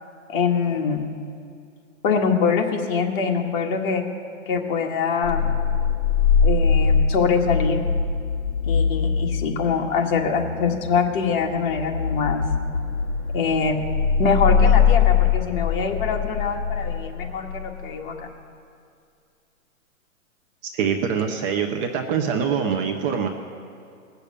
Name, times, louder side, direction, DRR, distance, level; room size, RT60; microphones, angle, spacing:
voice 1, 0.3-1.1 2.0-4.0 4.5-5.5 6.4-7.8 8.6-12.4 13.3-13.8 14.2-18.3, left 5 dB, 40° left, 1 dB, 1.7 m, -24 dB
sound 1, 5.2-17.9, left 6 dB, 55° left, 4.8 m, -22 dB
voice 2, 20.6-23.3, right 7 dB, 25° right, 4 dB, 0.7 m, -24 dB
19.0 x 6.9 x 8.6 m, 2.4 s
hypercardioid pair, 145°, 41 cm